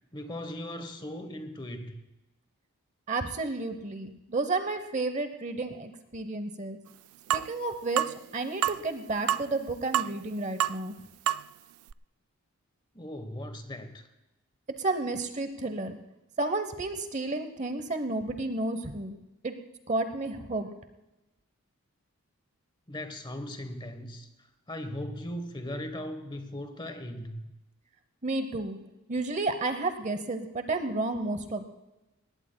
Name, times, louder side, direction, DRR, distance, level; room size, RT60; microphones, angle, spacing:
voice 1, 0.1-2.0 12.9-14.1 22.9-24.3 24.7-27.4, left 1 dB, 20° left, 8 dB, 1.0 m, -38 dB
voice 2, 3.1-6.8 7.3-10.9 14.8-16.0 16.4-19.5 19.9-20.7 28.2-28.8 29.1-31.6, right 2 dB, 30° right, 9 dB, 0.8 m, -31 dB
sound 1, 7.3-7.5 8.0-8.1 8.6-8.8 9.3-9.5 9.9-10.3 10.6-10.8 11.3-11.4 11.9-12.0, right 11 dB, 75° right, 0.3 m, -27 dB
19.0 x 17.0 x 2.2 m, 0.99 s
head